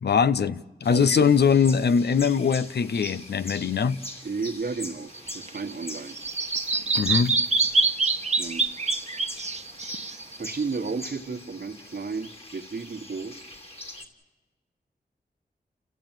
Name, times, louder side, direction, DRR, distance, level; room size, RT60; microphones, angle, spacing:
voice 1, 0.0-4.0 7.0-7.4, left 6 dB, 80° left, 0.7 m, -22 dB
sound 1, 0.8-14.0, left 1 dB, 35° left, 2.8 m, -42 dB
voice 2, 0.9-1.3 4.2-6.2 8.4-8.9 10.4-13.5, right 4 dB, 65° right, 1.4 m, -33 dB
Bird vocalization bird call bird song, 5.1-11.0, right 3 dB, 40° right, 1.2 m, -26 dB
29.0 x 15.0 x 9.1 m
wide cardioid pair, 70°, 17 cm